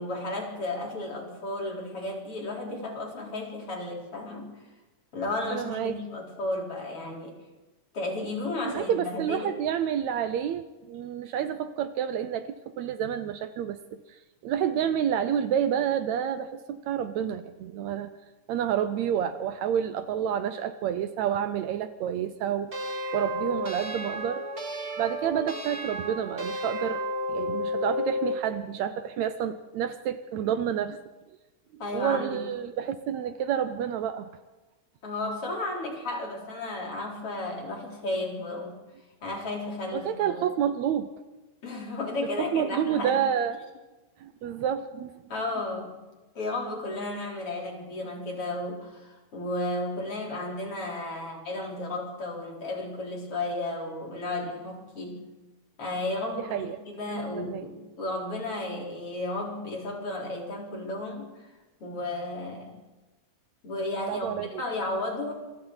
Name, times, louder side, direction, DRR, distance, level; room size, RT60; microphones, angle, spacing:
voice 1, 0.0-4.5 5.1-7.3 7.9-9.6 31.8-32.4 35.0-38.8 39.2-40.4 41.6-43.2 45.3-45.9 46.3-55.2 55.8-61.5 61.8-62.7 63.6-65.3, left 2 dB, 45° left, -1 dB, 4.7 m, -33 dB
voice 2, 5.5-6.0 8.7-14.0 14.4-18.1 18.5-22.7 23.1-24.5 25.0-27.0 27.3-31.0 31.7-34.3 39.9-41.1 42.4-43.6 44.2-45.2 56.5-56.8 57.1-57.7 64.1-64.6, right 9 dB, 75° right, 11 dB, 1.9 m, -29 dB
sound 1, 22.7-28.4, left 1 dB, 25° right, 2.0 m, -32 dB
27.0 x 24.0 x 4.0 m, 1.1 s
omnidirectional pair, 3.5 m